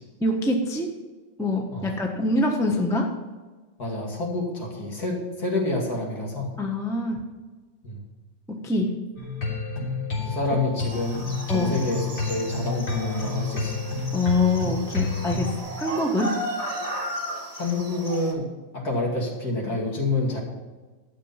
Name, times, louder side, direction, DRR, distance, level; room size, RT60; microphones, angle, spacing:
voice 1, 0.2-0.9 1.4-3.1 6.6-7.2 8.5-9.0 11.5-11.8 14.1-16.4, left 2 dB, ahead, 2 dB, 0.8 m, -25 dB
voice 2, 3.8-6.5 7.8-8.0 10.2-13.8 17.6-20.4, left 2 dB, 55° left, -2 dB, 2.9 m, -28 dB
sound 1, 9.2-15.6, left 4 dB, 80° left, 4.3 m, -29 dB
sound 2, 10.9-18.3, equal, 20° right, 1.6 m, -35 dB
12.0 x 6.9 x 5.7 m, 1.3 s
omnidirectional pair, 2.0 m